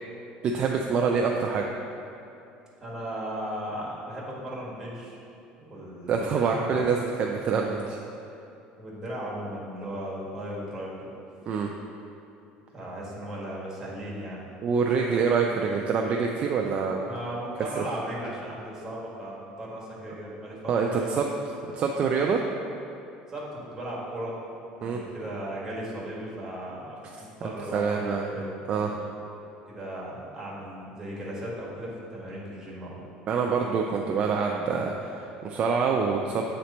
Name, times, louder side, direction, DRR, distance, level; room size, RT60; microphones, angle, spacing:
voice 1, 0.4-1.6 6.1-8.0 11.5-11.7 14.6-17.1 17.8-17.9 20.7-21.3 21.7-22.4 24.8-25.0 27.7-28.3 28.7-28.9 33.3-36.4, right 5 dB, 35° right, 1 dB, 0.3 m, -26 dB
voice 2, 2.8-5.2 5.6-6.9 8.8-11.1 12.7-14.5 17.0-21.1 23.3-24.4 24.8-28.9 29.5-33.1, right 1 dB, 15° right, -6 dB, 1.4 m, -36 dB
8.0 x 3.1 x 4.1 m, 2.7 s
cardioid pair, 150°, 3 cm